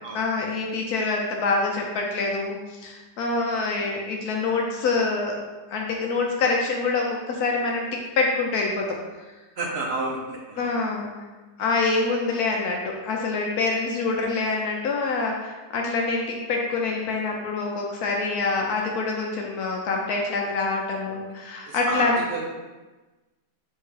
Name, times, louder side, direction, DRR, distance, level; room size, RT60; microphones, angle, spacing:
voice 1, 0.1-5.4 5.7-7.9 8.2-9.0 10.6-11.1 11.6-22.2, left 3 dB, 70° left, 0 dB, 1.0 m, -26 dB
voice 2, 9.6-10.8 11.6-11.7 21.0-21.2 21.7-22.5, right 2 dB, 75° right, -2 dB, 0.5 m, -31 dB
3.6 x 2.8 x 4.6 m, 1.2 s
omnidirectional pair, 1.8 m